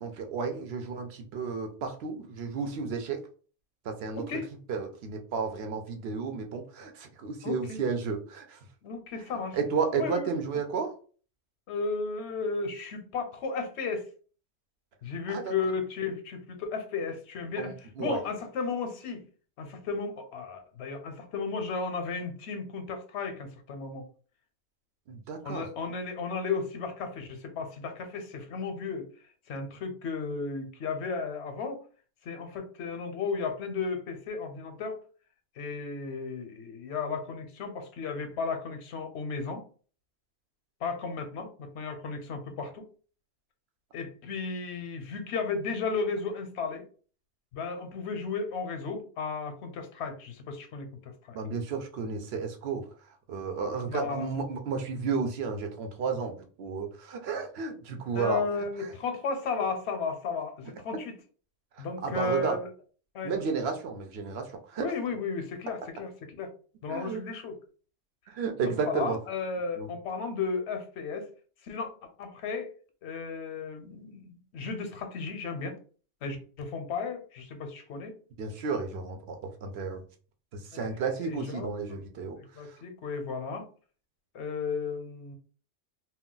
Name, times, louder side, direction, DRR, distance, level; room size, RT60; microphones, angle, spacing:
voice 1, 0.0-3.2 3.8-4.3 4.7-8.7 9.5-10.9 15.3-15.5 17.6-18.2 25.1-25.7 51.3-52.9 53.3-58.4 58.8-58.9 61.7-62.6 63.2-64.9 66.9-67.2 68.3-69.2 69.8-69.9 78.4-80.0 80.5-82.8, right 5 dB, 70° right, 5 dB, 0.8 m, -32 dB
voice 2, 7.4-7.8 8.8-9.6 9.9-10.4 11.7-14.1 15.0-19.2 19.6-24.1 25.4-29.1 29.5-31.8 32.2-35.0 35.6-39.6 40.8-42.9 43.9-46.8 47.5-51.4 53.9-54.3 57.9-61.1 61.8-62.7 63.1-63.3 64.8-66.1 66.4-66.5 66.8-67.5 68.6-71.3 71.6-72.7 73.0-75.8 76.2-78.1 80.7-81.0 81.2-82.0 82.5-83.7 84.3-85.4, left 4 dB, 75° left, 7 dB, 0.9 m, -34 dB
2.3 x 2.2 x 3.7 m, 0.41 s
omnidirectional pair, 1.2 m